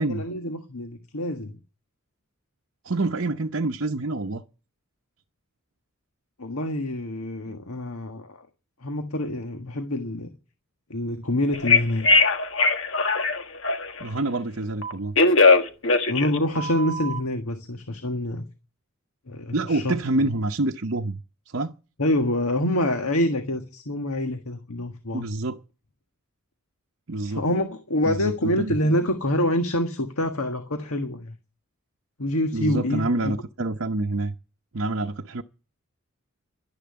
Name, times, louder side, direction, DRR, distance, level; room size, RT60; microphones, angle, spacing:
voice 1, 0.0-1.5 6.4-8.4 8.8-10.3 10.9-12.1 16.1-18.4 19.3-19.9 22.0-25.2 27.2-31.3 32.2-33.3, left 1 dB, 80° left, 1.6 m, -26 dB
voice 2, 2.8-4.4 14.0-15.1 19.5-21.2 21.5-21.7 25.1-25.6 27.1-27.4 28.1-28.8 32.5-34.4 34.7-35.4, right 2 dB, 60° right, 0.8 m, -27 dB
Telephone, 11.5-14.0 14.8-17.2, left 3 dB, 60° left, 1.5 m, -20 dB
12.0 x 10.5 x 8.6 m
head